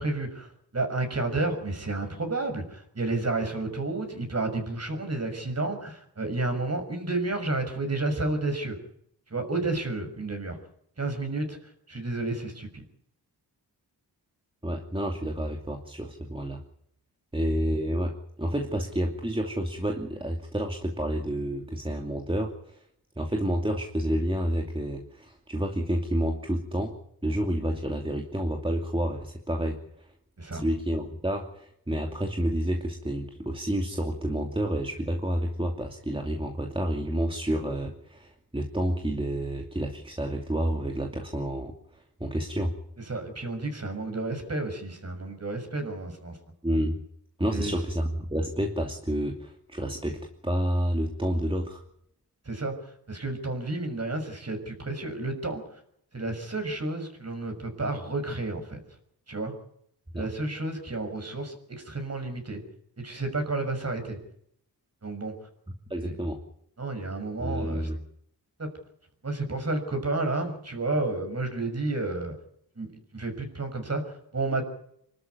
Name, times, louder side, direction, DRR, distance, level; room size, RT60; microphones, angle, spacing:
voice 1, 0.0-8.8 9.3-10.6 11.0-11.6 11.9-12.8 30.4-30.6 43.1-46.4 47.5-47.7 52.4-52.7 53.1-55.6 56.1-58.8 59.3-59.5 60.1-62.6 63.0-64.2 65.0-65.3 66.0-66.1 66.8-67.9 68.6-68.7 69.2-72.3 72.8-74.7, right 2 dB, 35° right, 6 dB, 6.4 m, -31 dB
voice 2, 14.6-16.6 17.3-18.1 18.4-22.8 23.2-26.9 27.2-30.1 30.5-42.7 46.6-47.0 47.4-51.8 60.1-60.3 65.9-66.4 67.4-68.0, equal, 10° right, 2 dB, 2.6 m, -29 dB
26.0 x 13.0 x 9.5 m, 0.70 s
wide cardioid pair, 115°, 41 cm